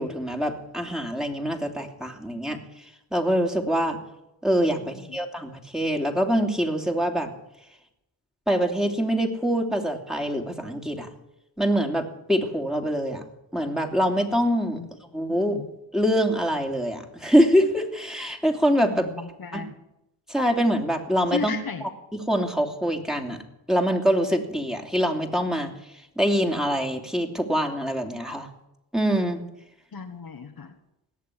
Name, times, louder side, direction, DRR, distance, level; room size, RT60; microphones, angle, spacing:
voice 1, 0.0-2.6 3.1-4.0 4.4-7.3 8.5-11.1 11.6-13.2 13.5-14.8 15.1-15.6 15.9-19.1 19.5-19.6 20.3-21.5 22.3-23.4 23.7-25.7 26.2-28.5 28.9-29.4, equal, ahead, 3 dB, 2.8 m, -24 dB
voice 2, 4.8-5.2 14.7-14.9 15.3-15.7 18.8-19.7 21.3-21.9 29.9-30.7, left 5 dB, 45° left, 5 dB, 1.6 m, -35 dB
18.0 x 6.9 x 10.0 m, 0.88 s
supercardioid pair, 45°, 49 cm